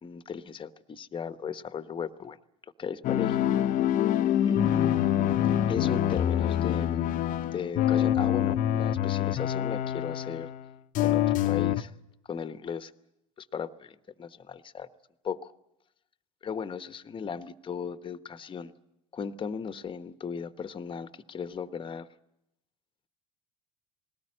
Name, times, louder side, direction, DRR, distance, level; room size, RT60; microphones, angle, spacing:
voice 1, 0.0-2.4 2.8-3.6 4.4-4.9 5.7-7.1 7.5-10.5 11.0-11.9 12.3-12.9 13.4-14.9 15.2-15.5 16.4-18.7 19.1-22.1, left 6 dB, 30° left, 12 dB, 1.1 m, -36 dB
sound 1, 3.0-10.7 10.9-11.8, left 11 dB, 50° left, 0.8 m, -26 dB
20.5 x 18.5 x 8.7 m, 0.84 s
hypercardioid pair, 70°, 18 cm